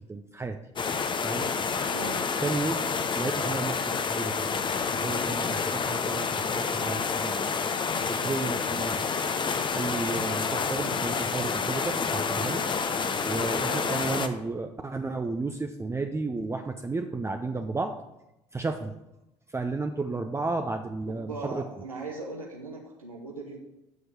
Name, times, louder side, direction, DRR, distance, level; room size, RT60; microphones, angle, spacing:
voice 1, 0.1-0.6 1.2-1.5 2.4-2.9 3.2-4.6 5.0-7.6 8.1-9.0 9.7-12.6 13.2-17.9 18.5-18.9 19.5-21.6, right 3 dB, 15° right, 5 dB, 0.7 m, -32 dB
sound 1, 0.8-14.3, left 5 dB, 30° left, 0.9 m, -29 dB
voice 2, 1.9-2.3 13.7-13.8 21.1-23.6, right 3 dB, 90° right, -1 dB, 1.0 m, -39 dB
7.3 x 6.4 x 7.8 m, 0.91 s
figure-of-eight pair, 55°, 17 cm